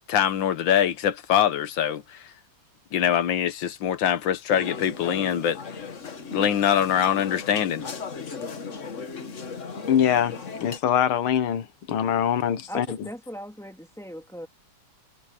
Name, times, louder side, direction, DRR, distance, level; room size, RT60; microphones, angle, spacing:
voice 1, 0.1-2.3 2.9-5.8 6.3-7.9, left 9 dB, 70° left, 1.7 m, -23 dB
sound 1, 4.5-10.8, left 5 dB, 40° left, 1.7 m, -36 dB
voice 2, 9.9-13.1, left 9 dB, 90° left, 2.0 m, -24 dB
voice 3, 12.7-14.5, equal, ahead, 3.3 m, -38 dB
omnidirectional pair, 2.2 m